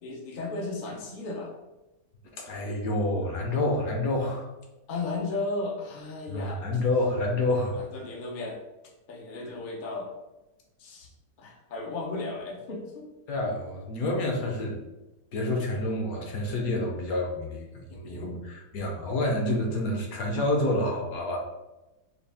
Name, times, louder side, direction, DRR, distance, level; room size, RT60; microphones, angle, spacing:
voice 1, 0.0-1.5 4.9-6.6 7.7-8.6 9.1-10.1 10.8-11.1 11.4-13.1 17.9-18.3, left 3 dB, 80° left, -1 dB, 0.4 m, -35 dB
voice 2, 2.4-4.5 6.3-7.8 13.3-14.8 15.3-21.4, left 1 dB, 60° left, 0 dB, 1.0 m, -28 dB
4.5 x 2.3 x 3.4 m, 1.0 s
omnidirectional pair, 2.1 m